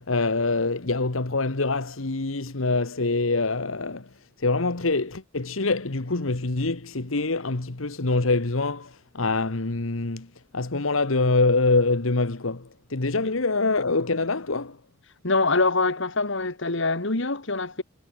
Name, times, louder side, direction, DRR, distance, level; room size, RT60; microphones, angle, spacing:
voice 1, 0.0-4.1 4.4-10.3 10.5-14.8, left 3 dB, 85° left, 1.5 m, -25 dB
voice 2, 15.2-17.8, left 3 dB, 65° left, 2.6 m, -24 dB
head